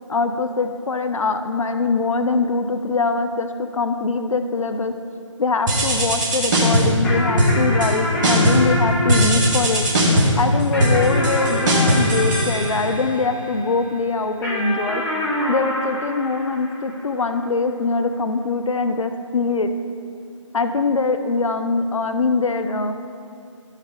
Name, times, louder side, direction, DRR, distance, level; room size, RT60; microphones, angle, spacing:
voice 1, 0.1-4.9 5.4-9.8 10.4-15.0 15.5-19.7 20.5-22.9, left 3 dB, 75° left, 8 dB, 0.6 m, -22 dB
sound 1, 5.7-7.0 7.4-7.9 8.2-8.7 9.1-13.1, equal, 35° right, 2.1 m, -19 dB
sound 2, 7.0-13.7 14.4-17.2, left 1 dB, 5° left, 1.3 m, -27 dB
12.0 x 6.5 x 5.0 m, 2.5 s
figure-of-eight pair, 150°, 17 cm